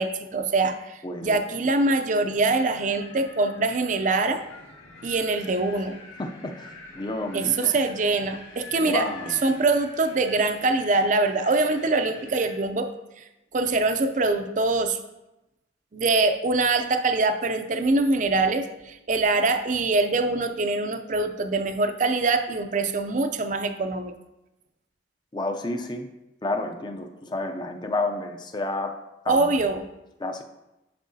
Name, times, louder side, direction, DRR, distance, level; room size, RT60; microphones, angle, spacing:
voice 1, 0.0-4.4 5.0-6.0 7.3-9.1 9.4-12.9 13.2-13.3 13.5-15.0 15.9-24.1 29.3-29.8, right 3 dB, 40° right, 8 dB, 0.5 m, -24 dB
voice 2, 1.0-1.4 6.2-6.7 6.9-7.8 8.8-9.6 25.3-26.1 26.4-28.9 29.2-29.5 30.2-30.4, left 2 dB, 25° left, 5 dB, 0.5 m, -30 dB
Wind, 2.7-12.6, left 2 dB, 80° left, 2.3 m, -45 dB
10.0 x 5.3 x 2.7 m, 0.95 s
head